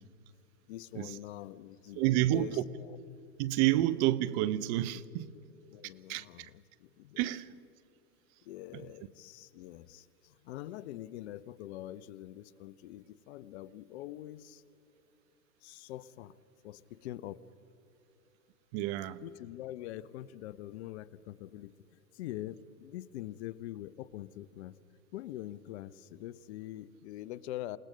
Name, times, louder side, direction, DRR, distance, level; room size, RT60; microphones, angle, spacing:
voice 1, 0.7-3.0 5.7-7.2 8.4-14.6 15.6-16.4 16.6-17.4 19.2-24.7 25.1-27.8, left 14 dB, 45° left, 0.8 m, -44 dB
voice 2, 2.0-2.6 3.4-5.3 6.1-6.5 7.2-7.5 18.7-19.2, right 14 dB, 30° right, 0.7 m, -29 dB
28.5 x 18.5 x 5.2 m
hypercardioid pair, 120°, 45 cm